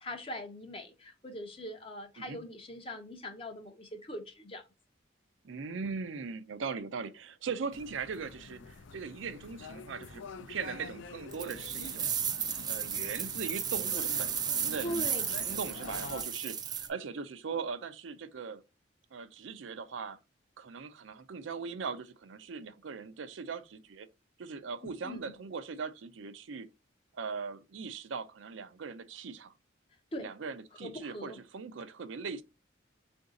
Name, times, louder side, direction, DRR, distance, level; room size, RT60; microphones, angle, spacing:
voice 1, 0.0-4.7 14.8-15.2 24.8-25.4 30.1-30.3 30.7-31.4, equal, 30° left, 0.6 m, -41 dB
voice 2, 5.4-10.2 10.5-12.1 12.7-15.0 15.4-18.6 19.1-20.2 20.6-24.1 24.4-26.7 27.1-29.5 30.2-32.4, right 5 dB, 80° right, 0.5 m, -40 dB
sound 1, 7.7-16.2, left 4 dB, 80° left, 0.4 m, -46 dB
sound 2, 11.3-16.9, right 8 dB, 20° right, 0.3 m, -34 dB
3.8 x 2.6 x 3.7 m
head